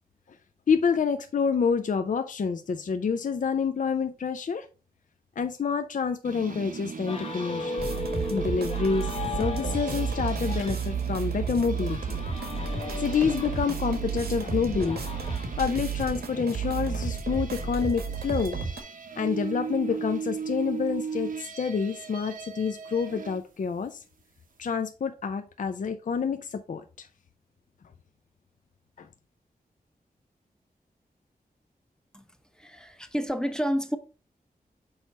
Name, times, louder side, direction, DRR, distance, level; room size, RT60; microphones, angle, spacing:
voice 1, 0.7-4.7 5.4-7.9 8.2-12.2 12.9-15.0 15.6-18.6 19.2-24.0 24.6-27.1 29.0-29.1, left 6 dB, 55° left, 0.5 m, -28 dB
sound 1, 6.2-23.4, right 5 dB, 60° right, 0.8 m, -39 dB
sound 2, 7.1-15.6, left 2 dB, 40° left, 1.0 m, -37 dB
sound 3, 7.8-18.8, right 5 dB, 90° right, 1.6 m, -32 dB
voice 2, 32.6-34.0, equal, 5° left, 0.7 m, -29 dB
6.3 x 4.6 x 4.1 m
wide cardioid pair, 120°, 16 cm